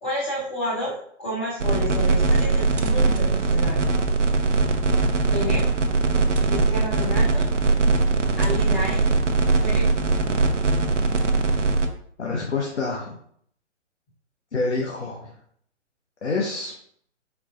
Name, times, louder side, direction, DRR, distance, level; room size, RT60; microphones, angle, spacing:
voice 1, 0.0-3.8 5.3-5.7 6.4-7.5 8.4-9.0 9.6-10.4, equal, 10° left, -10 dB, 0.7 m, -30 dB
sound 1, 1.6-11.9, right 3 dB, 75° right, 0.7 m, -21 dB
voice 2, 12.2-13.1 14.5-15.3 16.2-16.7, left 3 dB, 65° left, -1 dB, 1.0 m, -27 dB
4.6 x 4.1 x 2.5 m, 0.64 s
figure-of-eight pair, 130°, 37 cm